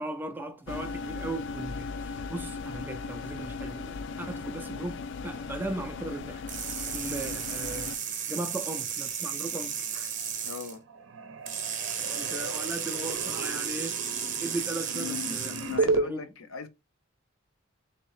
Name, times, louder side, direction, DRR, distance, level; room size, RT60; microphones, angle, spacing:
voice 1, 0.0-7.9 8.3-10.2 12.0-14.0 14.4-16.3, right 2 dB, 10° right, 0.4 m, -38 dB
sound 1, 0.7-8.0, left 4 dB, 60° left, 0.3 m, -37 dB
sound 2, 6.5-10.7 11.5-15.8, right 7 dB, 40° right, 0.8 m, -34 dB
sound 3, 10.1-10.6 10.9-16.0, right 3 dB, 70° right, 0.7 m, -33 dB
voice 2, 10.4-10.8 15.6-16.7, left 4 dB, 85° left, 0.7 m, -39 dB
3.5 x 2.9 x 3.1 m
head